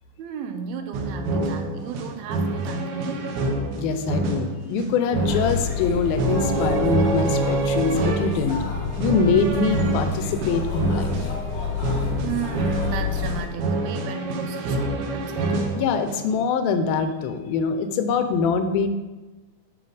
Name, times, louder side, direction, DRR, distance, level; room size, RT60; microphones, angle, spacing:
voice 1, 0.2-3.5 12.2-15.6, right 7 dB, 85° right, 8 dB, 2.6 m, -34 dB
sound 1, 0.9-16.4, right 2 dB, 70° right, 1.9 m, -27 dB
voice 2, 3.8-8.6 9.0-11.1 15.8-18.9, left 5 dB, 85° left, 9 dB, 2.4 m, -23 dB
sound 2, 5.1-13.5, left 6 dB, 60° left, 1.2 m, -29 dB
9.0 x 6.9 x 3.9 m, 1.2 s
omnidirectional pair, 4.3 m